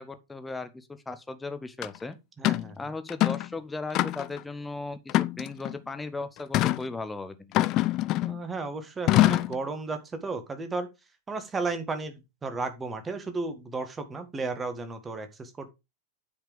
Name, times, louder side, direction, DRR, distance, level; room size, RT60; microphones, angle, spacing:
voice 1, 0.0-2.2 2.8-7.5, left 3 dB, 10° left, 1.2 m, -37 dB
sound 1, 1.8-1.9 2.4-2.7 3.1-3.5 3.9-4.4 5.1-5.7 6.5-6.8 7.5-8.4 9.1-9.6, left 16 dB, 35° left, 0.5 m, -24 dB
voice 2, 2.4-2.8 8.2-10.9 11.3-15.7, right 3 dB, 15° right, 1.8 m, -34 dB
9.4 x 5.2 x 5.1 m
figure-of-eight pair, 90°, 0 cm